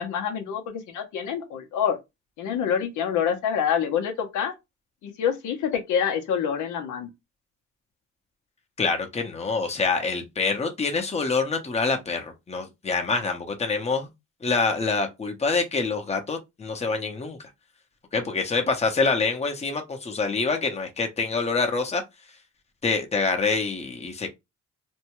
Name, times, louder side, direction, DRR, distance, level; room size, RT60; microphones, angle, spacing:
voice 1, 0.0-2.0 2.4-4.5 5.0-7.1, left 8 dB, 80° left, 0.7 m, -26 dB
voice 2, 8.8-14.1 14.4-17.4 18.1-22.0 22.8-24.3, left 4 dB, 20° left, 0.7 m, -26 dB
2.6 x 2.2 x 3.0 m
cardioid pair, 90°, 30 cm